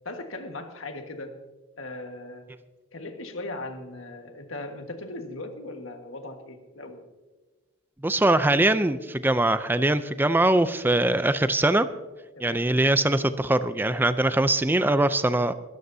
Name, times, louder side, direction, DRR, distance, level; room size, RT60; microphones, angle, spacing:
voice 1, 0.0-1.4 1.8-2.5 2.9-7.0 12.4-12.7, left 2 dB, 70° left, 5 dB, 1.5 m, -38 dB
voice 2, 8.0-11.9 12.4-15.5, right 1 dB, 10° right, 12 dB, 0.4 m, -22 dB
22.0 x 13.0 x 2.7 m, 1.2 s
head